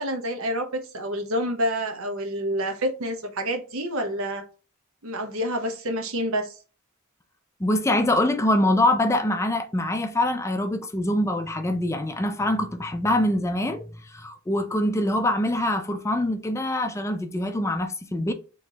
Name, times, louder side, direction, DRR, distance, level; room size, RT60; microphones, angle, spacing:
voice 1, 0.0-4.4 5.0-6.6, equal, 75° right, 0.9 m, -28 dB
voice 2, 7.6-18.3, left 1 dB, 15° left, 0.4 m, -24 dB
4.2 x 3.1 x 2.8 m
head